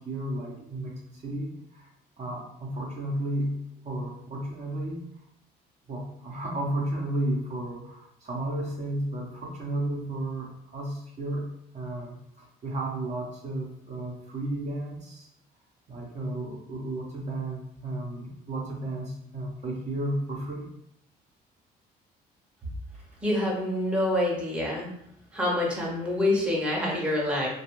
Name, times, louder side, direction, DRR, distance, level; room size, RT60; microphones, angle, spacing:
voice 1, 0.0-1.9 2.2-5.1 5.9-11.5 11.7-15.3 15.9-20.7 22.6-23.0, right 1 dB, 45° right, -2 dB, 0.7 m, -33 dB
voice 2, 23.2-24.9 25.3-27.5, left 1 dB, 5° right, -3 dB, 0.7 m, -26 dB
2.5 x 2.3 x 3.0 m, 0.74 s
cardioid pair, 110°, 17 cm